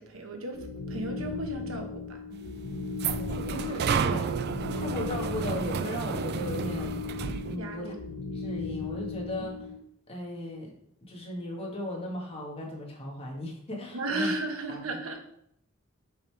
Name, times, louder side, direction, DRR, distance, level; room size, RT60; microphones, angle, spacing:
voice 1, 0.0-2.2 7.6-7.9 13.9-15.2, right 2 dB, 85° right, 4 dB, 1.1 m, -34 dB
sound 1, 0.5-9.8, left 4 dB, 80° left, 0.8 m, -37 dB
sound 2, 2.3-7.6, right 6 dB, 50° right, 0.4 m, -32 dB
voice 2, 3.1-4.4 4.7-7.0 7.5-9.7 10.1-10.7 11.0-14.3 14.7-14.8, left 1 dB, 30° left, -2 dB, 1.7 m, -37 dB
5.4 x 5.1 x 4.7 m, 0.74 s
head